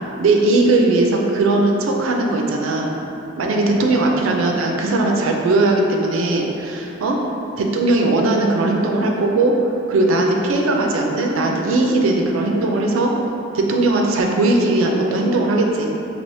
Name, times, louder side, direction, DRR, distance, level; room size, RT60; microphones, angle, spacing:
voice 1, 0.2-2.9 3.4-7.2 7.6-13.1 13.5-15.9, right 2 dB, 80° right, 1 dB, 0.4 m, -18 dB
3.3 x 2.8 x 2.7 m, 2.9 s
head